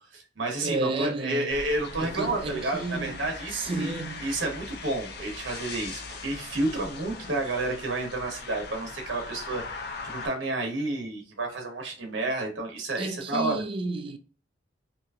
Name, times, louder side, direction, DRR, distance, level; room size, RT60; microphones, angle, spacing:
voice 1, 0.1-3.9 4.2-9.6 10.0-13.6, right 2 dB, 80° right, 0.9 m, -30 dB
voice 2, 0.6-1.6 2.0-3.3 3.5-4.3 13.0-14.2, right 3 dB, 30° right, 0.3 m, -32 dB
sound 1, 1.5-10.3, left 4 dB, 60° left, 0.5 m, -40 dB
2.9 x 2.5 x 2.3 m
head